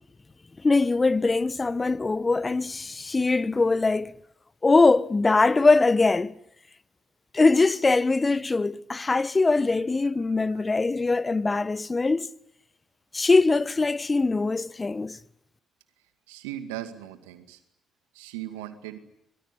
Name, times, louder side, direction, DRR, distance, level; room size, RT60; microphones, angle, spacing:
voice 1, 0.6-4.2 4.6-6.3 7.3-12.3 13.1-15.2, left 3 dB, 25° left, 1.2 m, -22 dB
voice 2, 16.3-17.6 18.1-19.0, right 13 dB, 80° right, 2.2 m, -38 dB
25.0 x 23.5 x 9.9 m
hypercardioid pair, 45°, 0 cm